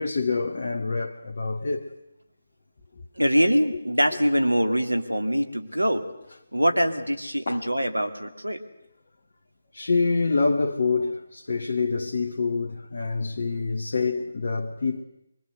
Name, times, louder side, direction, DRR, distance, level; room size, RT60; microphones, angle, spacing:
voice 1, 0.0-1.9 7.5-7.7 9.7-15.0, left 4 dB, 45° left, 1.5 m, -26 dB
voice 2, 3.2-6.0 6.5-8.6, equal, 80° right, 2.6 m, -23 dB
25.0 x 22.5 x 8.0 m
figure-of-eight pair, 150°, 0 cm